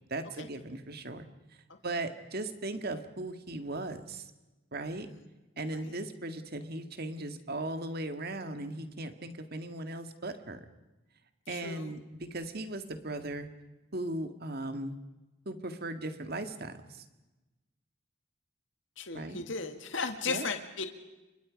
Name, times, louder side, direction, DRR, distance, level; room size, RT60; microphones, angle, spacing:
voice 1, 0.1-1.3 1.8-4.3 4.7-5.1 5.6-10.7 11.5-13.5 13.9-14.9 15.5-17.0 19.1-19.4 20.3-20.5, right 2 dB, 50° right, 8 dB, 2.0 m, -37 dB
voice 2, 11.5-11.9 19.0-20.8, left 5 dB, 65° left, 6 dB, 2.0 m, -36 dB
29.0 x 24.0 x 5.2 m, 1.1 s
head